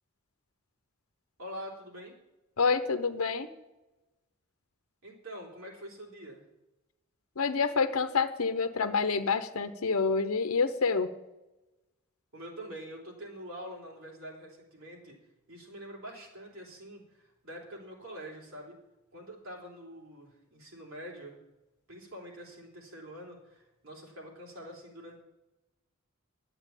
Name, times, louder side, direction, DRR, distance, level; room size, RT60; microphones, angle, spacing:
voice 1, 1.4-2.2 5.0-6.4 12.3-15.2 15.5-18.8 19.1-21.4 21.9-25.2, equal, 70° right, -1 dB, 3.8 m, -45 dB
voice 2, 2.6-3.5 7.4-11.1, left 4 dB, 85° left, 9 dB, 0.8 m, -27 dB
11.0 x 7.9 x 9.1 m, 1.0 s
head